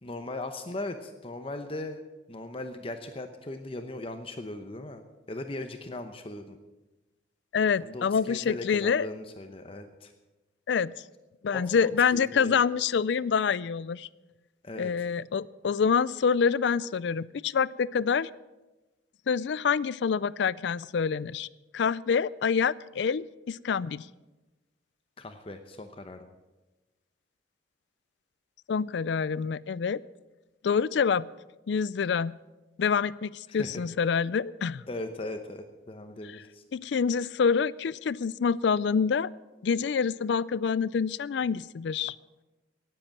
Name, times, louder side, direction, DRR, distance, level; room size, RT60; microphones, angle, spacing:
voice 1, 0.0-5.0 5.3-6.6 7.8-10.1 11.5-12.6 14.6-15.1 25.2-26.3 33.5-33.9 34.9-36.6, left 2 dB, 30° left, 7 dB, 0.8 m, -39 dB
voice 2, 7.5-9.1 10.7-10.9 11.4-14.1 14.8-18.3 19.3-21.5 21.7-24.0 28.7-30.0 30.6-31.3 31.7-32.3 32.8-34.8 36.7-39.3 39.6-42.1, left 6 dB, 70° left, 20 dB, 0.4 m, -26 dB
18.5 x 7.8 x 7.3 m, 1.1 s
head